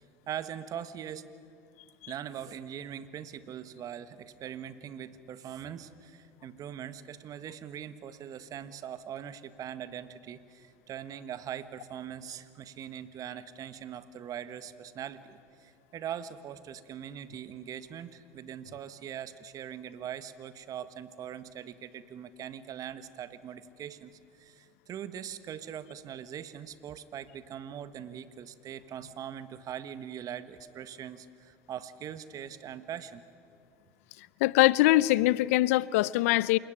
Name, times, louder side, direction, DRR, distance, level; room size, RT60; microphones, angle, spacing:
voice 1, 0.3-1.3 2.1-33.2, right 9 dB, 50° right, 12 dB, 1.5 m, -41 dB
voice 2, 34.4-36.6, left 17 dB, 75° left, 21 dB, 0.6 m, -23 dB
28.0 x 18.5 x 10.0 m, 2.4 s
hypercardioid pair, 75°, 8 cm